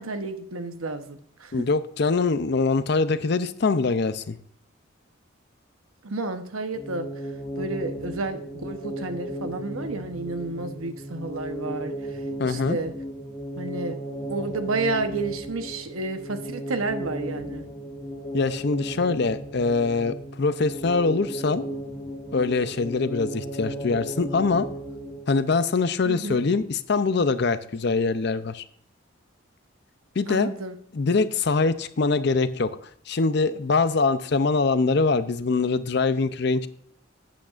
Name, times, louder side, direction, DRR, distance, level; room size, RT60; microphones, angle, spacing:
voice 1, 0.0-1.5 6.0-7.1 7.6-11.9 12.4-12.9 13.6-14.0 14.3-17.7 26.0-26.4 30.3-30.8, right 3 dB, 85° right, 8 dB, 1.0 m, -31 dB
voice 2, 1.5-4.4 12.4-12.8 18.3-21.6 22.3-24.7 25.3-28.6 30.2-30.5 30.9-32.7 33.1-36.7, left 4 dB, 50° left, 13 dB, 0.5 m, -23 dB
sound 1, 6.7-25.5, right 1 dB, 25° left, 3.2 m, -35 dB
12.0 x 8.5 x 2.5 m, 0.65 s
head